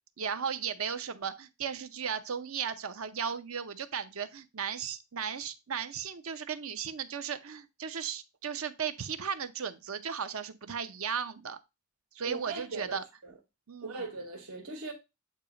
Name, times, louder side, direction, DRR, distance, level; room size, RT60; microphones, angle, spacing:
voice 1, 0.2-11.6 12.1-13.0 13.7-14.0, right 7 dB, 75° right, 0.7 m, -36 dB
voice 2, 12.2-13.4 13.8-14.9, right 3 dB, 90° right, 1.6 m, -40 dB
8.4 x 2.8 x 5.0 m
head